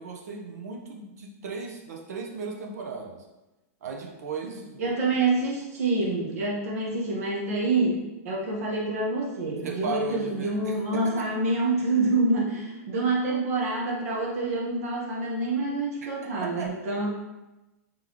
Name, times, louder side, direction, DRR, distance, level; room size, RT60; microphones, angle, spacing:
voice 1, 0.0-3.2 3.8-5.0 9.6-11.3 16.4-16.7, right 4 dB, 80° right, 2 dB, 0.8 m, -36 dB
voice 2, 4.8-17.1, right 2 dB, 65° right, -3 dB, 1.2 m, -27 dB
3.8 x 3.6 x 3.0 m, 1.0 s
supercardioid pair, 160°, 9 cm